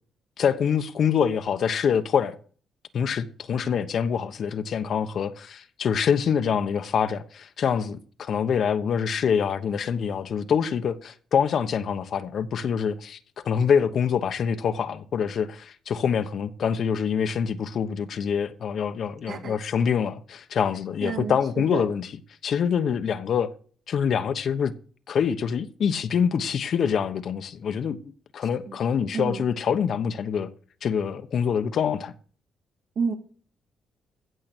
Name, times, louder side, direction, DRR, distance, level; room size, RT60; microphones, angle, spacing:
voice 1, 0.4-2.4 2.9-13.2 13.4-22.1 22.4-23.5 23.9-24.7 25.1-28.0 28.3-30.5 30.8-32.1, left 7 dB, 55° left, 1.1 m, -25 dB
voice 2, 19.3-19.6 21.0-21.9 28.7-28.8 29.1-29.4 33.0-33.1, right 5 dB, 60° right, 2.6 m, -30 dB
16.0 x 6.9 x 6.2 m
cardioid pair, 120°, 0 cm